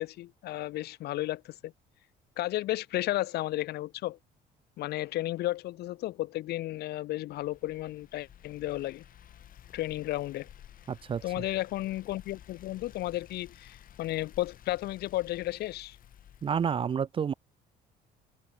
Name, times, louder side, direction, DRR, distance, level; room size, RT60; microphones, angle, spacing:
voice 1, 0.0-1.7 2.4-4.2 4.8-9.0 9.7-10.5 11.2-16.0, left 16 dB, 75° left, 1.2 m, -33 dB
sound 1, 7.3-16.7, left 10 dB, 55° left, 4.2 m, -54 dB
voice 2, 10.9-11.2 16.4-17.3, right 7 dB, 30° right, 0.5 m, -29 dB
cardioid pair, 110°, 17 cm